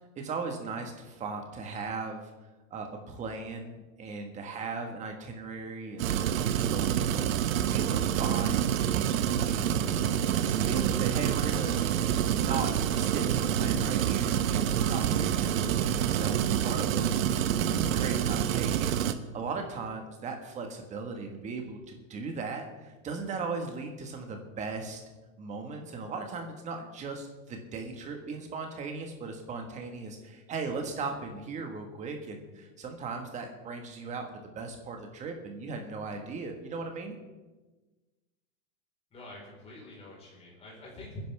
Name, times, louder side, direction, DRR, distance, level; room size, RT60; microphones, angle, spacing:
voice 1, 0.2-2.3 2.7-7.3 7.7-11.8 12.3-17.2 17.7-18.9 19.3-25.0 25.4-37.1, right 4 dB, 20° right, 4 dB, 1.6 m, -38 dB
sound 1, 6.0-19.1, right 10 dB, 75° right, 1.1 m, -27 dB
voice 2, 39.1-41.2, left 2 dB, 15° left, -4 dB, 4.5 m, -46 dB
27.0 x 10.5 x 3.5 m, 1.2 s
supercardioid pair, 165°, 40 cm